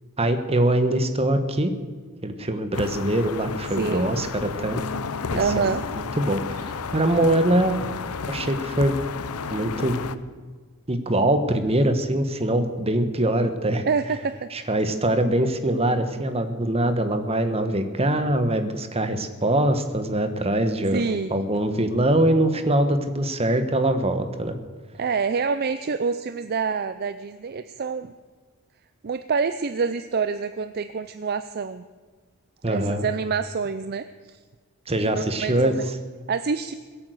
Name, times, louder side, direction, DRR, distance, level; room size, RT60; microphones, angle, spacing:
voice 1, 0.2-1.7 2.2-4.9 5.3-5.7 6.2-7.8 8.3-9.0 9.5-10.0 10.9-13.9 14.5-21.0 21.3-24.5 32.6-33.1 34.9-35.8, right 1 dB, 25° right, 8 dB, 1.3 m, -23 dB
sound 1, 2.7-10.2, left 5 dB, 75° left, 0.7 m, -32 dB
voice 2, 3.7-4.1 5.4-5.8 13.8-14.5 20.9-21.4 24.9-28.1 29.0-31.8 32.7-34.4 35.4-35.8 36.3-36.7, right 5 dB, 45° right, 11 dB, 0.5 m, -27 dB
21.5 x 8.6 x 7.8 m, 1.5 s
head